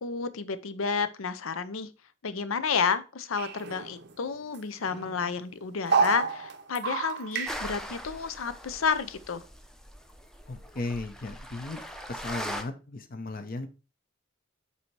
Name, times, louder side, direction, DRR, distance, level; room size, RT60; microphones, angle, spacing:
voice 1, 0.0-1.9 2.2-9.4, left 5 dB, 80° left, 0.6 m, -31 dB
sound 1, 3.4-4.3 4.5-4.6 4.9-5.4 5.9-7.7, right 5 dB, 55° right, 0.6 m, -30 dB
sound 2, 7.5-12.6, equal, 5° left, 0.5 m, -40 dB
voice 2, 10.5-11.8 12.1-13.7, left 2 dB, 45° left, 0.7 m, -36 dB
8.2 x 2.8 x 4.5 m
head